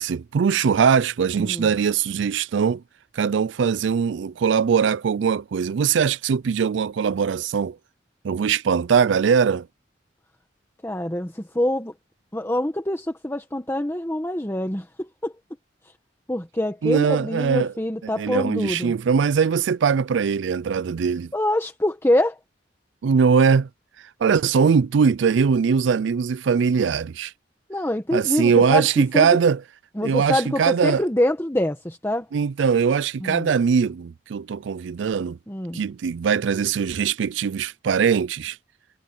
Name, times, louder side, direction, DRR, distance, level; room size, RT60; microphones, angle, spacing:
voice 1, 0.0-2.8 3.1-7.8 8.2-9.7 16.8-17.7 18.0-21.3 23.0-23.7 24.2-27.3 28.1-29.6 30.0-31.0 32.3-35.4 35.7-38.6, right 6 dB, 80° right, 0.4 m, -21 dB
voice 2, 10.8-11.9 12.3-15.3 16.3-18.9 21.3-22.4 27.7-28.9 29.1-29.3 30.0-32.3 33.2-33.5 35.5-35.8, left 1 dB, 15° left, 1.3 m, -25 dB
head